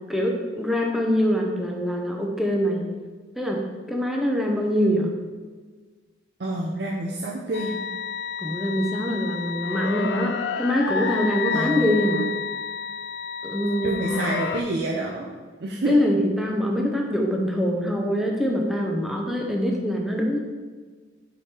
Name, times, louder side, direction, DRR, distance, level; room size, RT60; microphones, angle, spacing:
voice 1, 0.1-2.8 3.4-3.6 3.9-5.1 8.4-12.3 13.4-14.3 15.9-20.4, equal, ahead, 0 dB, 0.7 m, -24 dB
voice 2, 6.4-7.8 11.5-11.9 13.8-15.3 15.6-16.0, right 1 dB, 60° right, -2 dB, 0.6 m, -28 dB
sound 1, 7.5-14.6, left 7 dB, 65° left, 0.4 m, -30 dB
4.9 x 4.9 x 4.4 m, 1.4 s
head